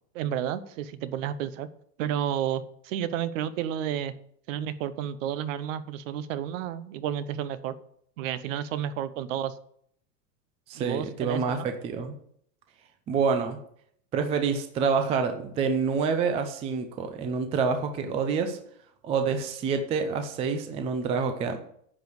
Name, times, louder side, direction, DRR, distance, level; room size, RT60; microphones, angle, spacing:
voice 1, 0.1-1.7 2.0-4.1 4.5-7.7 8.2-9.6 10.7-11.7, right 10 dB, 50° right, 14 dB, 0.9 m, -31 dB
voice 2, 10.7-12.2 13.1-13.6 14.1-18.6 19.0-21.6, right 5 dB, 15° right, 7 dB, 0.5 m, -27 dB
9.9 x 5.3 x 8.0 m, 0.66 s
supercardioid pair, 150°, 49 cm